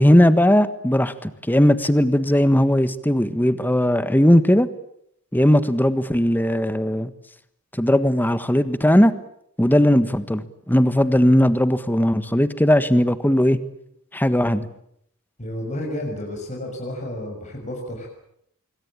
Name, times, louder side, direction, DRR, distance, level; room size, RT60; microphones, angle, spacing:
voice 1, 0.0-4.7 5.3-7.1 7.8-9.1 9.6-13.6 14.1-14.7, equal, 10° left, 13 dB, 1.4 m, -18 dB
voice 2, 15.4-18.1, left 1 dB, 35° left, 0 dB, 6.4 m, -31 dB
26.0 x 24.0 x 8.8 m, 0.73 s
head